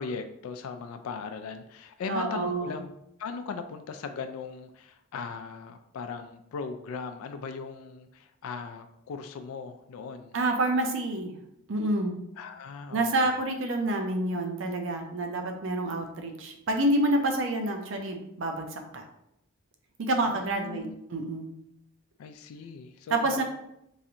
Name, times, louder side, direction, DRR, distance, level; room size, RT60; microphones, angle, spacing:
voice 1, 0.0-10.4 12.4-13.4 20.3-20.9 22.2-23.4, left 5 dB, 90° left, 8 dB, 0.3 m, -38 dB
voice 2, 2.1-2.8 10.3-11.3 11.7-12.2 12.9-19.0 20.0-21.5 23.1-23.4, right 1 dB, 65° right, 4 dB, 0.5 m, -28 dB
3.1 x 2.5 x 2.8 m, 0.80 s
head